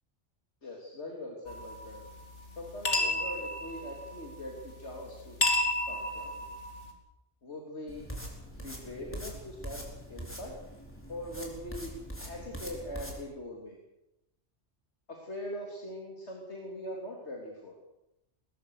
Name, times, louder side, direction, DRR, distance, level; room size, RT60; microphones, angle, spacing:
voice 1, 0.6-2.0 2.6-5.4 5.9-6.5 7.4-8.1 8.6-9.8 10.1-10.5 11.1-11.9 12.2-13.8 15.1-17.8, left 1 dB, 70° left, 0 dB, 3.5 m, -41 dB
sound 1, 1.5-6.9, left 2 dB, 85° left, 3.4 m, -33 dB
sound 2, 7.9-13.2, equal, 10° left, 4.7 m, -43 dB
22.0 x 20.0 x 6.5 m, 0.88 s
omnidirectional pair, 1.2 m